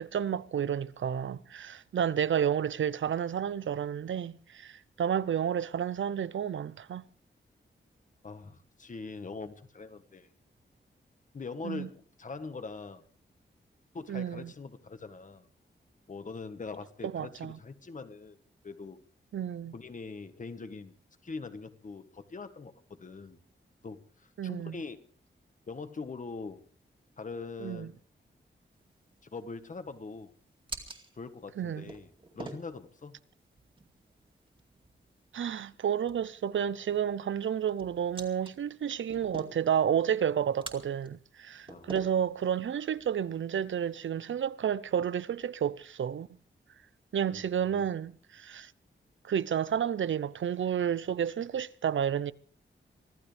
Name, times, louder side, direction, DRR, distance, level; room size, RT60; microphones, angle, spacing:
voice 1, 0.0-7.0 11.6-11.9 14.1-14.5 17.1-17.6 19.3-19.7 24.4-24.8 27.6-27.9 31.6-31.9 35.3-46.3 47.1-48.7 49.2-52.3, right 9 dB, 80° right, 0.7 m, -31 dB
voice 2, 8.2-10.3 11.3-13.0 13.9-15.5 16.1-18.4 18.6-19.0 19.7-20.9 21.2-23.4 23.8-25.0 25.7-26.6 27.2-27.9 29.3-30.3 31.2-32.1 32.3-33.2 41.7-42.1 47.3-47.8, left 4 dB, 40° left, 1.5 m, -42 dB
sound 1, 28.7-44.1, right 3 dB, 25° right, 2.3 m, -49 dB
24.5 x 15.0 x 3.4 m
wide cardioid pair, 160°, 20 cm